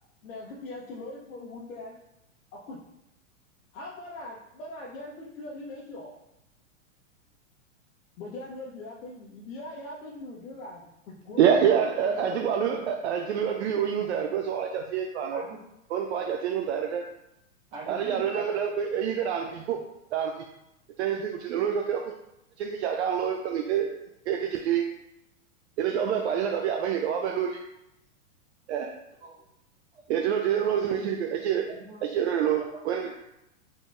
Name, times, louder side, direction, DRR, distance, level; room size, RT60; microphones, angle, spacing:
voice 1, 0.2-2.0 2.5-2.8 3.7-6.2 8.2-11.5 12.0-12.8, left 2 dB, 75° left, -4 dB, 0.9 m, -41 dB
voice 2, 11.4-15.4 15.9-17.0 17.9-19.8 20.1-20.4 21.0-22.1 22.6-23.9 24.3-24.9 25.8-27.6 28.7-28.9 30.1-31.7 32.1-33.1, right 8 dB, 60° right, 2 dB, 0.5 m, -27 dB
voice 3, 17.7-18.5 29.2-29.4 29.9-30.0 31.7-32.0 32.6-32.7, right 2 dB, 35° right, -10 dB, 1.2 m, -41 dB
3.9 x 3.8 x 2.5 m, 0.88 s
hypercardioid pair, 150°, 40 cm